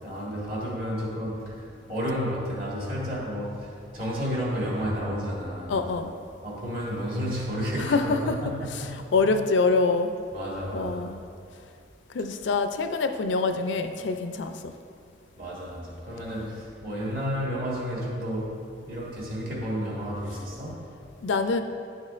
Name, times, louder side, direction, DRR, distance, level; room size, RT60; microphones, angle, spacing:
voice 1, 0.0-6.0 6.4-9.4 10.3-11.1 15.4-20.8, equal, 50° right, -4 dB, 1.7 m, -32 dB
voice 2, 5.7-6.1 7.9-8.3 9.1-10.1 10.7-11.2 12.1-14.5 21.2-21.6, left 3 dB, 85° left, 8 dB, 0.4 m, -25 dB
10.5 x 6.3 x 2.5 m, 2.4 s
head